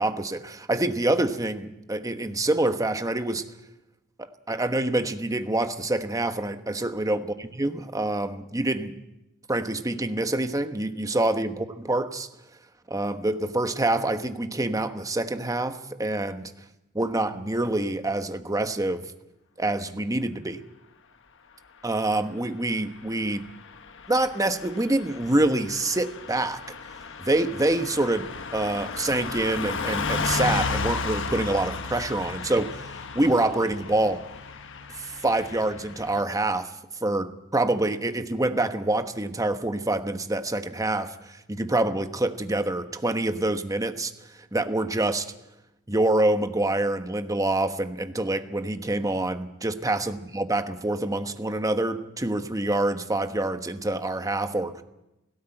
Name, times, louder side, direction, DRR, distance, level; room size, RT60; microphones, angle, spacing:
voice 1, 0.0-3.4 4.2-7.2 7.6-9.0 9.5-12.3 12.9-16.5 16.9-19.1 19.6-20.6 21.8-23.4 24.1-26.6 27.2-34.2 35.0-36.7 37.0-44.1 44.5-45.3 45.9-54.8, right 2 dB, 15° right, 8 dB, 1.1 m, -26 dB
Car passing by / Truck, 23.2-36.2, left 4 dB, 60° left, 1.3 m, -34 dB
17.5 x 17.5 x 8.9 m, 0.92 s
head